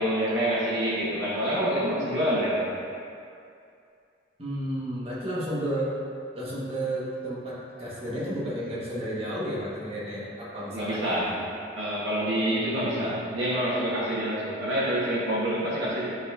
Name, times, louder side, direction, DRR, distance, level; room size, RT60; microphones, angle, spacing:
voice 1, 0.0-2.7 10.7-11.3 11.8-16.1, equal, 85° right, -8 dB, 1.2 m, -27 dB
voice 2, 4.4-6.0 6.3-11.3 12.3-13.1, right 1 dB, 30° right, -8 dB, 1.4 m, -32 dB
8.8 x 4.1 x 2.6 m, 2.5 s
head